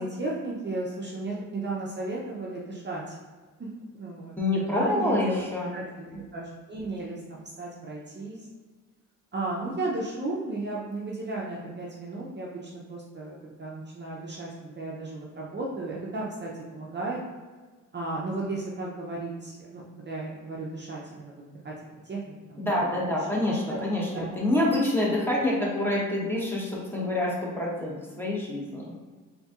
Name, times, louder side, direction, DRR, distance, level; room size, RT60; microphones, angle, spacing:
voice 1, 0.0-3.2 3.9-4.3 4.7-5.4 5.7-8.4 9.3-12.6 12.9-17.2 17.9-21.7 22.1-22.2 22.5-22.6 23.5-23.8 24.1-24.2, right 2 dB, 35° right, -4 dB, 0.6 m, -34 dB
voice 2, 4.4-5.8 22.6-28.9, left 1 dB, 5° left, -5 dB, 1.1 m, -27 dB
4.0 x 2.8 x 2.4 m, 1.4 s
cardioid pair, 80°, 32 cm